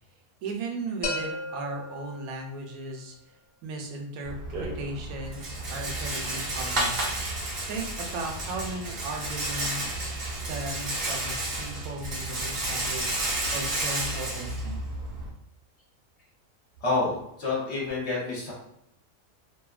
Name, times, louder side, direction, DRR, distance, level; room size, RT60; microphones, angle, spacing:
voice 1, 0.4-3.2 3.6-7.0 7.7-10.1 10.4-14.8, right 2 dB, 85° right, 2 dB, 1.0 m, -36 dB
sound 1, 1.0-2.9, left 2 dB, 85° left, 0.3 m, -35 dB
Rattle, 4.2-15.3, right 1 dB, 50° right, 0.5 m, -31 dB
voice 2, 16.8-18.5, left 3 dB, 55° left, -5 dB, 1.2 m, -28 dB
2.7 x 2.5 x 2.3 m, 0.77 s
omnidirectional pair, 1.5 m